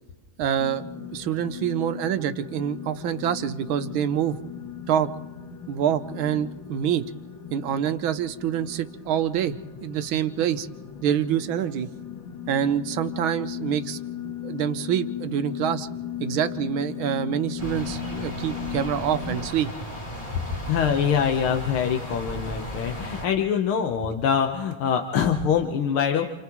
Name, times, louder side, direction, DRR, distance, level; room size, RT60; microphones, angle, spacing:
voice 1, 0.4-4.4 4.9-5.1 5.7-7.0 7.5-9.5 9.8-10.7 11.0-11.9 12.5-14.0 14.2-15.9 16.2-19.7, right 9 dB, 75° right, 11 dB, 1.6 m, -26 dB
sound 1, 0.6-19.5, left 9 dB, 65° left, 2.0 m, -37 dB
sound 2, 17.6-23.3, equal, 15° left, 3.2 m, -36 dB
voice 2, 20.7-26.3, left 7 dB, 85° left, 3 dB, 1.9 m, -24 dB
29.5 x 28.5 x 3.1 m, 1.2 s
omnidirectional pair, 2.3 m